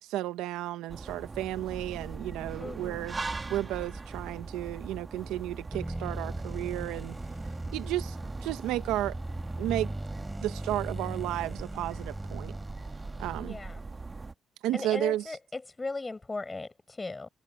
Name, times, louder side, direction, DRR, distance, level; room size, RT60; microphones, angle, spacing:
voice 1, 0.0-3.2 3.5-7.2 7.7-8.2 8.4-9.2 9.6-9.9 10.4-12.5 13.2-13.6 14.6-15.4, right 14 dB, 85° right, 1.2 m, -33 dB
sound 1, 0.9-14.3, right 3 dB, 30° right, 1.9 m, -41 dB
voice 2, 2.6-3.1 13.4-13.8 14.7-17.3, left 3 dB, 25° left, 7.4 m, -37 dB
sound 2, 5.7-13.7, right 1 dB, 10° right, 3.9 m, -39 dB
supercardioid pair, 55°, 0 cm